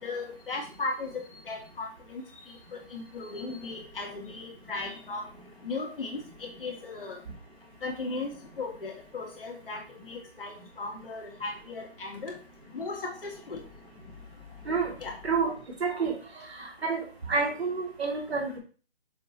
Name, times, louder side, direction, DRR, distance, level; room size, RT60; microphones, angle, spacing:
voice 1, 0.0-5.3 5.6-7.2 7.8-12.3 12.7-13.6 15.0-15.2, left 3 dB, 60° left, 0 dB, 2.3 m, -37 dB
voice 2, 15.8-16.1 16.8-17.0 17.3-18.6, right 4 dB, 75° right, -1 dB, 2.9 m, -28 dB
6.7 x 3.7 x 4.2 m, 0.38 s
hypercardioid pair, 170°, 32 cm